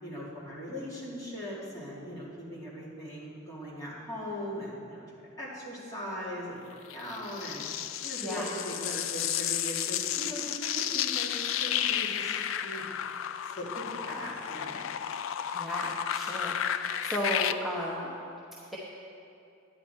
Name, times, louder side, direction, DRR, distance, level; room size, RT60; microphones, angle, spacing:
voice 1, 0.0-5.0 5.4-7.6 8.0-12.3 12.6-12.8 13.4-14.8, equal, 15° left, -7 dB, 2.4 m, -39 dB
sound 1, 6.9-17.5, left 10 dB, 75° left, 0.4 m, -32 dB
voice 2, 15.5-18.2, equal, ahead, -7 dB, 0.9 m, -34 dB
10.0 x 9.9 x 4.4 m, 2.6 s
head